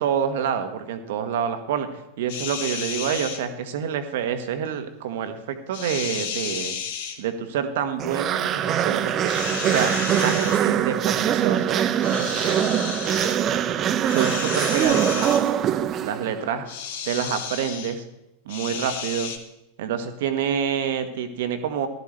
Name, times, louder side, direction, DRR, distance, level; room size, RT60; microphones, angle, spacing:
voice 1, 0.0-1.9 2.2-6.8 7.2-9.3 9.7-12.6 14.1-15.3 16.0-16.6 17.0-18.0 18.4-19.3 19.8-21.9, right 8 dB, 55° right, 9 dB, 1.3 m, -27 dB
sound 1, 2.3-3.4 5.7-7.2 9.2-10.6 12.0-13.4 14.1-15.4 16.7-17.9 18.5-19.4, left 7 dB, 55° left, 1.4 m, -32 dB
sound 2, 8.0-16.5, right 9 dB, 30° right, 0.6 m, -23 dB
15.0 x 13.0 x 3.3 m, 0.87 s
figure-of-eight pair, 90°, 0 cm